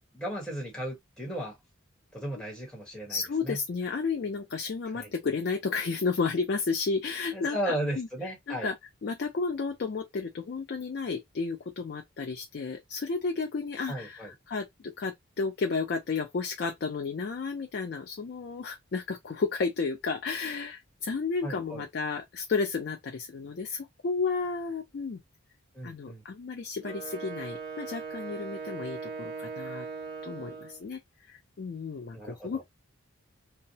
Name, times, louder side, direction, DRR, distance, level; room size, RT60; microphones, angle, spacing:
voice 1, 0.1-1.5 2.1-3.2 3.4-3.6 4.9-5.1 7.3-8.7 13.9-14.3 21.4-21.8 25.7-26.2 32.1-32.6, right 1 dB, 5° left, 1.0 m, -35 dB
voice 2, 3.1-8.1 8.5-8.7 9.0-25.2 25.8-29.9 30.2-31.0 31.3-32.6, left 4 dB, 50° left, 0.4 m, -32 dB
Wind instrument woodwind instrument, 26.8-30.8, right 5 dB, 50° right, 0.9 m, -39 dB
2.8 x 2.0 x 2.6 m
head